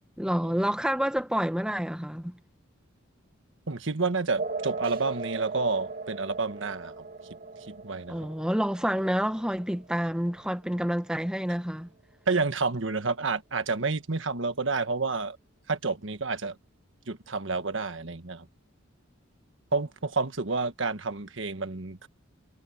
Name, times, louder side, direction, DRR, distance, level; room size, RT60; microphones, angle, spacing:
voice 1, 0.2-2.4 8.1-11.9, equal, 5° right, 1.1 m, -28 dB
voice 2, 3.7-7.0 7.7-8.3 12.3-15.4 15.7-16.6 17.1-18.5 19.7-22.1, right 4 dB, 65° right, 1.4 m, -29 dB
sound 1, 4.4-11.4, right 4 dB, 45° right, 2.2 m, -39 dB
head